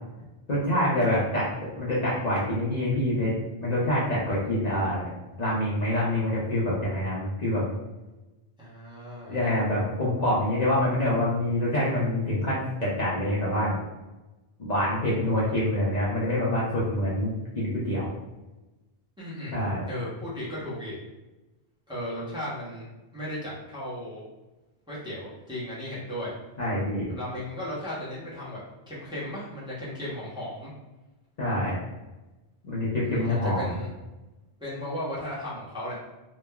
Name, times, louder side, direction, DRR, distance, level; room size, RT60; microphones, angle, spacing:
voice 1, 0.5-1.5 1.7-3.3 3.6-5.0 5.4-7.7 9.3-13.8 14.6-18.1 19.5-19.8 26.6-27.1 31.4-31.8 32.6-33.6, left 1 dB, 50° left, -7 dB, 0.7 m, -26 dB
voice 2, 8.6-9.4 19.2-19.6 19.9-21.0 21.9-22.8 23.1-24.2 24.9-26.3 27.1-28.6 28.9-30.7 33.1-33.9 34.6-36.0, left 1 dB, 5° right, -9 dB, 0.7 m, -35 dB
3.1 x 2.1 x 2.2 m, 1.1 s
omnidirectional pair, 1.0 m